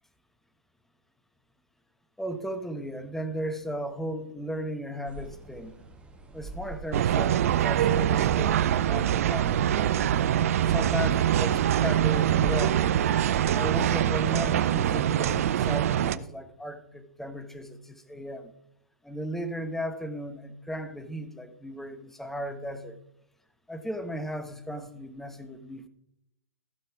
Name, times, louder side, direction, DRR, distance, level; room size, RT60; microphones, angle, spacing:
voice 1, 2.2-5.8 6.3-10.0 10.6-12.8 13.5-18.5 19.0-23.0 23.7-25.9, equal, 5° left, 9 dB, 1.1 m, -36 dB
sound 1, 5.1-14.5, right 2 dB, 10° right, 2.0 m, -44 dB
sound 2, 6.9-16.2, right 11 dB, 60° right, 0.6 m, -24 dB
15.5 x 6.7 x 4.7 m, 0.77 s
hypercardioid pair, 120°, 9 cm